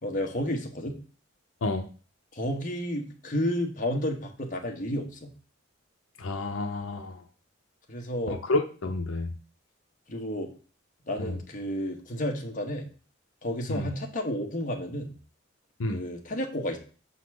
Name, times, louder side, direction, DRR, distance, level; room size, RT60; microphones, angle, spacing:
voice 1, 0.0-1.0 2.3-5.3 7.9-8.4 10.1-10.5 11.1-12.9 13.4-15.1 15.9-16.8, left 1 dB, 40° left, 2 dB, 1.2 m, -31 dB
voice 2, 6.2-7.2 8.3-9.3 11.2-11.3 13.7-13.9 15.8-16.0, left 2 dB, 80° left, 5 dB, 0.7 m, -30 dB
5.8 x 4.1 x 6.2 m, 0.39 s
head